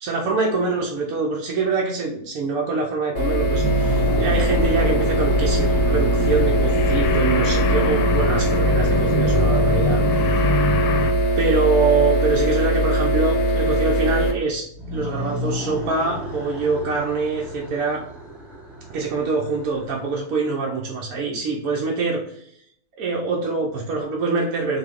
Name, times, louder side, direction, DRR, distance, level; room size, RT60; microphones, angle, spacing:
voice 1, 0.0-10.0 11.4-18.0 18.9-22.4 23.0-24.8, right 4 dB, 70° right, -2 dB, 1.1 m, -24 dB
Electric Humming Sound, 3.1-14.3, right 1 dB, 50° left, 1.7 m, -21 dB
sound 1, 3.2-8.4 14.7-20.3, right 1 dB, ahead, 1.2 m, -33 dB
sound 2, 4.0-11.1, left 4 dB, 85° left, 1.2 m, -25 dB
3.9 x 3.2 x 3.6 m, 0.68 s
omnidirectional pair, 1.6 m